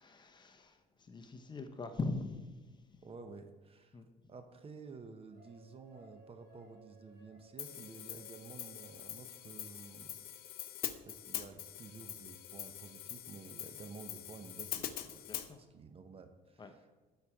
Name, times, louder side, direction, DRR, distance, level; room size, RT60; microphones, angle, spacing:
voice 1, 0.0-3.0 3.9-4.1 15.3-15.6 16.6-16.7, left 3 dB, 25° left, 6 dB, 0.8 m, -42 dB
voice 2, 3.0-4.0 4.3-10.1 11.0-16.9, right 4 dB, 35° right, 8 dB, 0.8 m, -52 dB
sound 1, 5.3-9.8, right 2 dB, 65° right, 2.7 m, -62 dB
Hi-hat, 7.6-15.5, left 12 dB, 65° left, 0.6 m, -44 dB
12.0 x 4.4 x 4.8 m, 1.2 s
cardioid pair, 110°, 17 cm